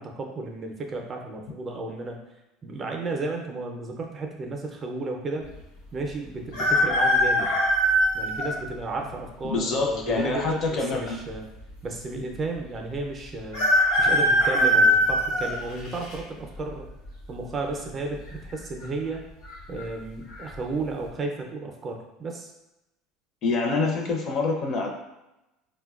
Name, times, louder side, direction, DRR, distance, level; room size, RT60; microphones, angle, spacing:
voice 1, 0.0-2.2 2.6-5.4 5.9-7.5 8.1-11.5 11.8-13.6 14.0-16.9 17.3-19.2 19.7-22.5, right 3 dB, 30° right, 2 dB, 0.5 m, -33 dB
sound 1, 6.5-8.5 9.2-9.3 10.4-11.0 11.3-11.4 11.6-11.7 13.5-16.1 16.7-17.1 18.2-18.6 18.8-18.9 19.4-19.8 20.3-20.5, equal, 75° left, 1.0 m, -22 dB
voice 2, 9.5-11.2 23.4-24.9, left 3 dB, 45° left, 1 dB, 0.6 m, -26 dB
3.9 x 2.2 x 2.3 m, 0.95 s
supercardioid pair, 120°, 0 cm